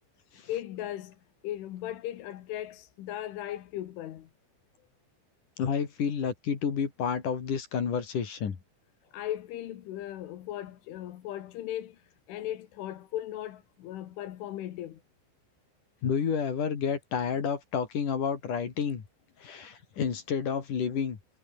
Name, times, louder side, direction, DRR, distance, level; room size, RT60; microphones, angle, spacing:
voice 1, 0.5-1.2 1.4-4.3 9.1-15.0, left 13 dB, 80° left, 4.2 m, -37 dB
voice 2, 5.6-8.6 16.0-19.0 19.4-21.2, left 7 dB, 45° left, 4.0 m, -30 dB
omnidirectional pair, 5.5 m